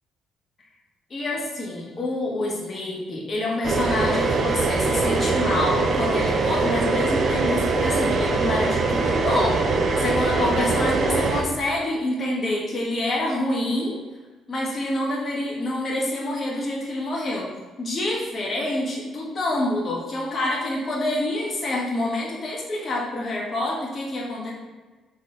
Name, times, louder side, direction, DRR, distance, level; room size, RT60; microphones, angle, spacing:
voice 1, 1.1-14.0 14.5-17.5 17.8-24.5, left 1 dB, 45° left, -2 dB, 1.8 m, -27 dB
sound 1, 3.6-11.4, right 3 dB, 55° right, 0.8 m, -22 dB
4.8 x 4.4 x 4.9 m, 1.3 s
hypercardioid pair, 50°, 0 cm